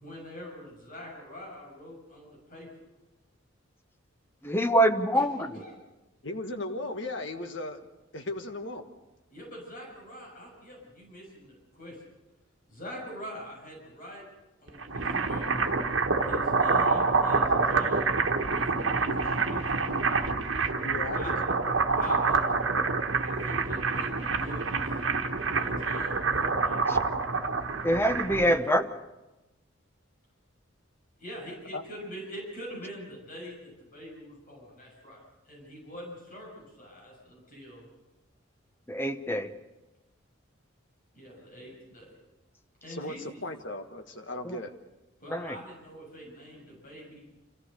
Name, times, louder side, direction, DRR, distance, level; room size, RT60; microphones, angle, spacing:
voice 1, 0.0-2.7 5.1-5.7 9.3-12.0 12.7-14.2 14.6-15.7 16.2-18.2 18.5-20.1 21.1-21.3 21.9-22.7 23.0-24.9 25.4-26.8 28.4-28.8 31.2-35.2 35.4-37.9 41.1-42.1 42.8-43.2 45.2-47.3, equal, 45° left, -2 dB, 6.7 m, -44 dB
voice 2, 4.4-5.5 26.9-27.0 27.8-28.8 38.9-39.5 44.4-44.6 45.3-45.6, equal, 10° left, 8 dB, 0.8 m, -25 dB
voice 3, 6.2-7.8 8.1-8.9 19.1-19.2 20.8-21.3 31.7-31.8 42.9-44.7, left 2 dB, 60° left, 6 dB, 1.5 m, -36 dB
sound 1, 14.7-28.6, right 4 dB, 65° right, 1.4 m, -27 dB
27.0 x 14.5 x 6.6 m, 1.0 s
head